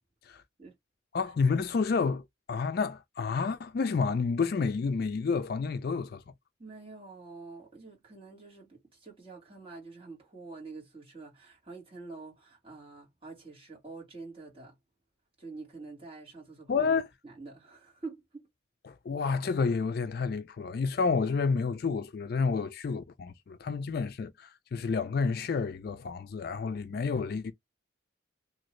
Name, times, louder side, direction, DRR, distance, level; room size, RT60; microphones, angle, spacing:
voice 1, 1.1-6.2 16.7-17.1 18.9-27.5, left 5 dB, 50° left, 0.3 m, -30 dB
voice 2, 6.6-14.8 15.4-16.9 17.2-18.5, right 3 dB, 30° right, 1.7 m, -46 dB
2.8 x 2.7 x 3.0 m
head